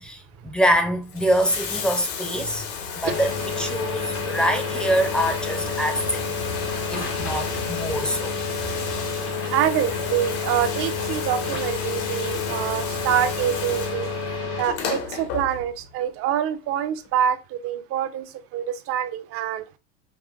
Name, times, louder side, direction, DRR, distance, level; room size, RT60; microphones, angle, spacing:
voice 1, 0.0-2.7 2.9-8.4, equal, 5° left, 0.6 m, -25 dB
Bathtub (filling or washing), 1.0-15.9 17.1-17.2, left 5 dB, 65° left, 1.1 m, -34 dB
sound 1, 3.0-14.6, left 4 dB, 85° left, 1.8 m, -29 dB
voice 2, 9.5-14.1 14.6-19.7, right 10 dB, 45° right, 0.6 m, -26 dB
5.4 x 2.7 x 2.4 m
hypercardioid pair, 105°, 34 cm